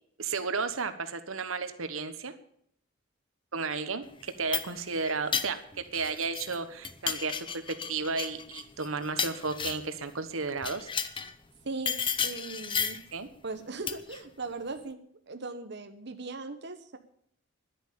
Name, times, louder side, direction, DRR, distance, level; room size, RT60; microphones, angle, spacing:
voice 1, 0.2-2.3 3.5-5.6 5.9-7.3 7.7-10.9 13.1-13.3, right 4 dB, 80° right, 10 dB, 1.2 m, -33 dB
sound 1, 4.2-6.6 6.8-10.0 10.6-11.3 11.9-13.1 13.9-14.2, left 6 dB, 25° left, 0.8 m, -33 dB
voice 2, 11.6-13.0 13.4-15.0 15.3-17.0, right 3 dB, 55° right, 6 dB, 1.1 m, -39 dB
11.0 x 10.5 x 8.6 m, 0.67 s
head